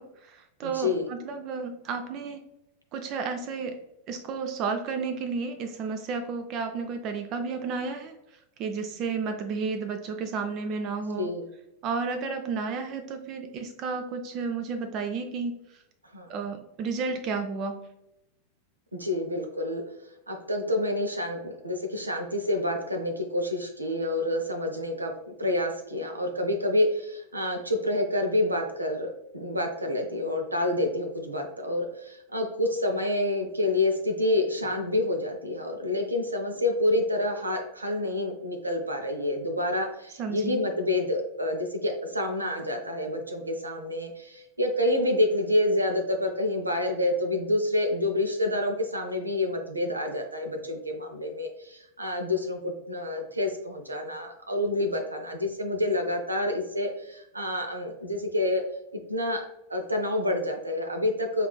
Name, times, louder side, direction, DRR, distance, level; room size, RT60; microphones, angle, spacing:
voice 1, 0.0-2.4 2.9-3.8 4.1-8.1 8.6-11.3 11.8-15.8 16.3-17.9 40.2-40.6, right 5 dB, 35° right, 7 dB, 0.4 m, -32 dB
voice 2, 0.6-1.1 11.1-11.4 16.1-16.3 18.9-19.8 20.3-58.6 59.1-59.4 59.7-61.5, left 1 dB, 80° right, 4 dB, 0.6 m, -28 dB
5.5 x 2.4 x 2.3 m, 0.87 s
figure-of-eight pair, 90°, 0 cm